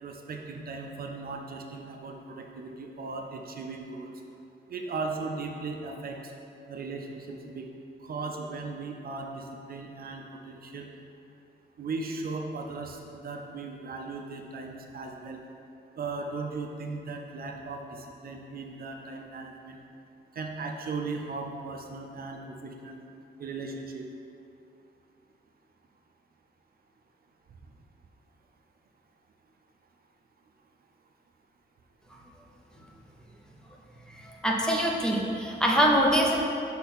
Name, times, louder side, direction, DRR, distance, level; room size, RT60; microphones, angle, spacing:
voice 1, 0.0-4.2 4.7-6.3 6.7-7.7 8.0-10.9 11.8-15.4 16.0-19.8 20.3-23.0 23.4-24.1, right 3 dB, 55° right, 2 dB, 0.5 m, -37 dB
voice 2, 34.2-36.4, equal, 5° left, -2 dB, 0.6 m, -24 dB
6.1 x 4.1 x 4.2 m, 2.6 s
wide cardioid pair, 170°, 18 cm